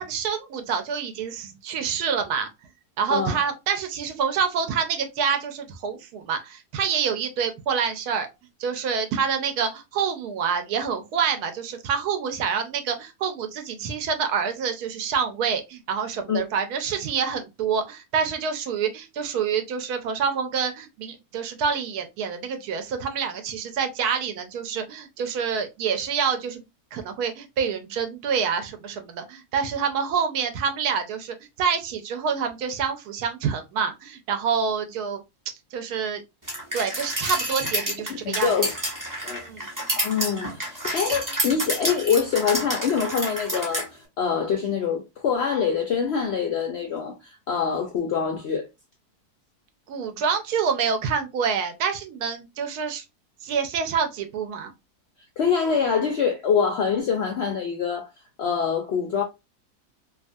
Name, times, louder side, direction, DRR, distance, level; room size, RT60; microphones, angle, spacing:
voice 1, 0.0-2.5 3.0-8.3 8.6-26.6 26.9-35.2 35.7-36.2 36.7-38.6 39.4-39.7 49.9-53.0 53.4-54.7, right 6 dB, 80° right, 1.1 m, -27 dB
sound 1, 36.5-43.9, right 1 dB, 15° right, 0.7 m, -29 dB
voice 2, 38.2-38.7 39.2-39.4 40.0-48.7 55.4-58.1 58.4-59.2, left 6 dB, 75° left, 0.6 m, -25 dB
2.8 x 2.4 x 2.5 m
omnidirectional pair, 1.7 m